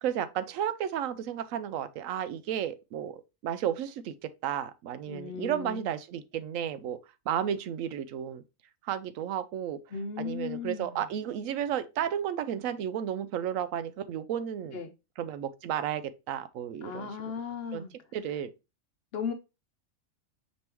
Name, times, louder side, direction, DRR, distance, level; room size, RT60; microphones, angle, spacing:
voice 1, 0.0-3.1 3.4-4.1 4.4-7.0 7.3-8.4 8.8-9.8 10.2-14.8 15.2-17.1 17.7-17.8 18.1-18.5, right 9 dB, 80° right, 1.0 m, -33 dB
voice 2, 5.1-5.9 9.9-11.1 14.7-14.9 16.8-17.9 19.1-19.3, left 6 dB, 60° left, 0.7 m, -36 dB
5.2 x 3.0 x 3.3 m
omnidirectional pair, 1.4 m